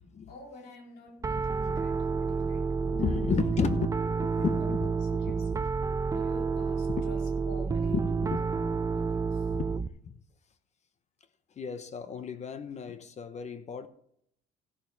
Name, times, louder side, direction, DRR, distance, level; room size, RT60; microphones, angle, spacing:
voice 1, 0.3-5.5 6.1-9.5, left 1 dB, 75° left, 3.7 m, -47 dB
Piano, 1.2-9.9, right 5 dB, 20° right, 0.4 m, -29 dB
voice 2, 1.4-1.8 2.8-5.3 6.9-7.0 7.9-8.4 9.5-10.2 11.6-13.9, left 6 dB, 40° left, 1.0 m, -34 dB
15.5 x 6.9 x 4.8 m
cardioid pair, 110°, 17 cm